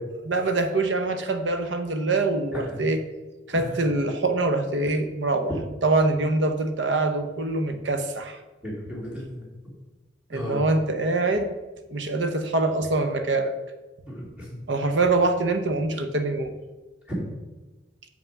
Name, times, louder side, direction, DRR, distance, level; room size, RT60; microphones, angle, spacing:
voice 1, 0.3-3.0 3.5-8.4 10.3-11.5 11.9-13.5 14.7-16.5, right 2 dB, 80° right, 7 dB, 0.8 m, -24 dB
voice 2, 8.6-9.7 10.3-10.6 14.1-14.6 17.1-17.3, equal, 5° right, -6 dB, 2.7 m, -34 dB
6.6 x 5.6 x 6.0 m, 1.2 s
head